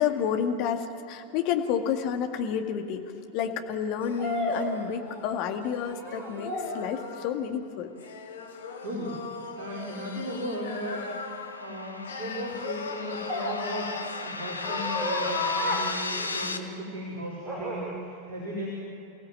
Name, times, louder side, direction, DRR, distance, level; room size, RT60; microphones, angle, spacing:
voice 1, 0.0-3.0 3.3-7.9, left 8 dB, 45° left, 5 dB, 2.0 m, -30 dB
sound 1, 1.8-1.9 4.2-5.5 5.8-6.9 9.6-9.9 13.3-16.8 17.4-18.0, equal, 15° right, 5.3 m, -35 dB
sound 2, 4.0-7.4 8.0-11.7 12.1-14.2 14.5-15.9, left 5 dB, 65° left, 1.9 m, -37 dB
voice 2, 8.8-9.2 9.6-11.1 11.6-18.7, equal, 55° right, -4 dB, 4.9 m, -36 dB
sound 3, 8.9-16.6, left 3 dB, 80° left, 1.2 m, -37 dB
29.5 x 16.5 x 7.6 m, 2.7 s
figure-of-eight pair, 90°, 0 cm